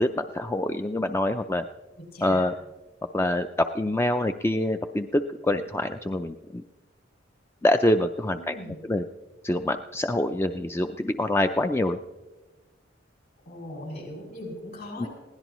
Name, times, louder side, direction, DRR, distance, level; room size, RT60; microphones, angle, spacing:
voice 1, 0.0-1.7 2.2-2.5 3.1-6.6 7.6-8.6 8.9-9.0 9.4-12.0 15.0-15.1, left 1 dB, 15° left, 7 dB, 0.4 m, -25 dB
voice 2, 2.1-2.5 8.3-8.8 13.4-15.1, left 1 dB, 55° left, -2 dB, 6.2 m, -39 dB
22.0 x 16.5 x 3.0 m, 1.2 s
head